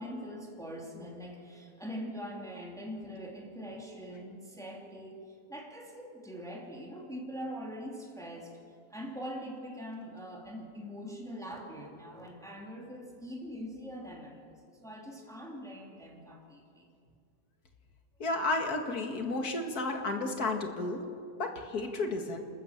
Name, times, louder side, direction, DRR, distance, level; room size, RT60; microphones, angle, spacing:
voice 1, 0.0-8.6 8.9-16.9, equal, ahead, -1 dB, 2.6 m, -43 dB
voice 2, 18.2-21.0 21.4-22.4, left 2 dB, 65° left, 4 dB, 2.3 m, -32 dB
27.5 x 14.0 x 7.3 m, 2.4 s
omnidirectional pair, 1.7 m